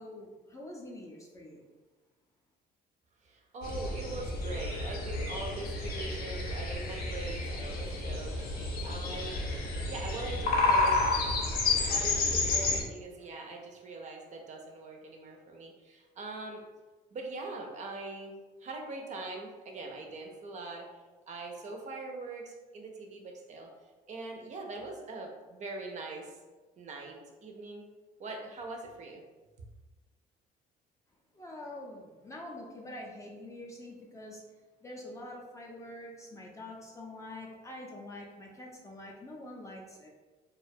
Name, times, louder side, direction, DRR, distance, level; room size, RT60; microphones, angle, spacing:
voice 1, 0.0-1.6 31.3-34.4 34.8-40.1, left 1 dB, 20° left, -1 dB, 0.4 m, -45 dB
voice 2, 3.2-9.5 9.9-11.0 11.9-16.6 17.1-18.4 18.6-20.9 21.3-23.7 24.1-26.3 26.8-27.9 28.2-29.2, right 3 dB, 45° right, 2 dB, 0.4 m, -42 dB
sound 1, 3.6-12.8, left 3 dB, 65° left, 0.6 m, -30 dB
2.2 x 2.1 x 2.6 m, 1.2 s
cardioid pair, 110°, 17 cm